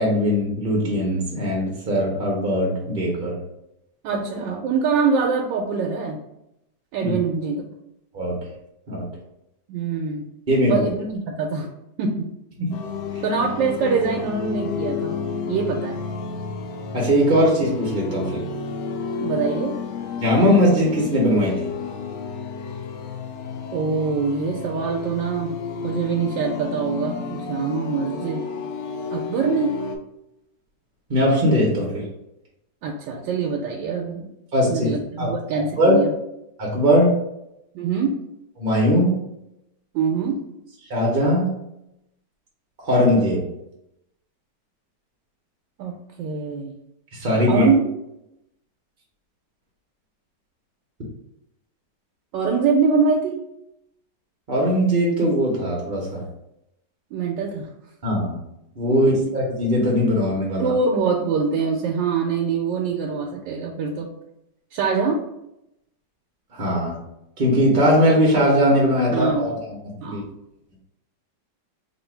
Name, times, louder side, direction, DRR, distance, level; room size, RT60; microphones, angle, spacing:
voice 1, 0.0-3.4 7.0-7.1 8.1-8.4 8.9-9.0 10.5-10.7 12.6-12.7 13.1-13.2 16.9-18.4 20.2-21.7 31.1-32.1 34.5-34.9 35.2-35.3 35.8-36.0 36.6-37.1 38.6-39.2 40.9-41.5 42.8-43.4 47.1-47.7 54.5-56.2 58.0-58.4 58.8-60.7 66.5-67.0 67.4-70.2, equal, 45° right, -2 dB, 0.7 m, -20 dB
voice 2, 4.0-6.2 6.9-7.7 9.7-10.2 10.6-11.7 12.0-12.3 13.2-15.2 15.5-16.0 19.2-19.7 23.7-25.5 25.8-28.5 29.1-29.8 32.8-34.3 34.7-36.1 37.7-38.1 39.9-40.4 45.8-46.7 47.5-47.8 52.3-53.4 57.1-57.7 59.1-59.2 60.6-64.1 64.7-65.3 69.1-69.6 70.0-70.3, right 5 dB, 80° right, 1 dB, 1.2 m, -24 dB
sound 1, 12.7-30.0, left 5 dB, 80° left, 1.2 m, -31 dB
3.3 x 2.6 x 4.4 m, 0.84 s
omnidirectional pair, 1.9 m